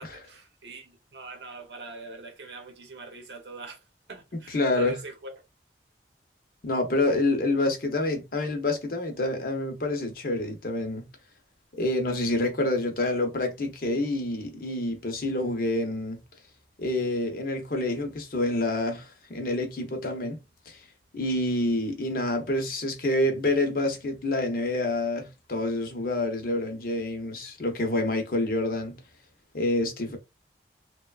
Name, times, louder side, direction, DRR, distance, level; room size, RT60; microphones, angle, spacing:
voice 1, 0.0-3.8 4.1-5.4 7.1-7.2, right 2 dB, 75° right, 0.8 m, -42 dB
voice 2, 4.5-5.0 6.6-11.1 11.7-16.2 16.8-20.4 20.7-20.8 21.1-29.0 29.5-30.2, left 2 dB, 55° left, 0.7 m, -27 dB
3.0 x 2.1 x 2.3 m
head